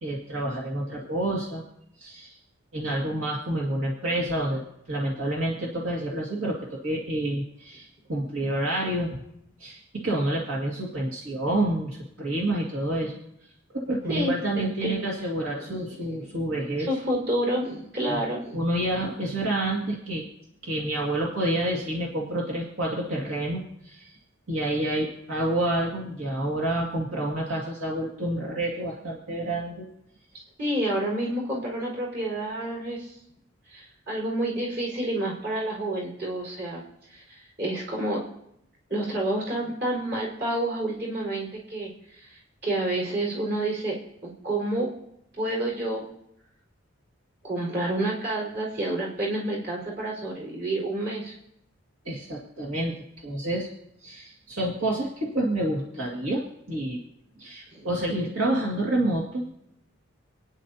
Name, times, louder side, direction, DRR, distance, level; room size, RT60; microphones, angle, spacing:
voice 1, 0.0-1.6 2.0-2.4 2.7-4.6 4.9-9.1 9.6-13.2 13.7-16.9 18.0-18.2 18.5-20.2 20.6-24.2 24.5-29.9 52.0-53.7 54.0-56.4 56.7-57.0 57.4-59.5, right 1 dB, 75° right, -3 dB, 2.1 m, -28 dB
voice 2, 14.1-15.0 15.7-15.8 16.8-18.6 30.3-33.1 33.7-36.8 37.1-38.2 38.9-44.0 44.2-44.9 45.4-46.0 47.4-51.3 57.7-57.9, right 1 dB, 50° right, -3 dB, 4.5 m, -29 dB
29.0 x 9.8 x 2.8 m, 0.78 s
head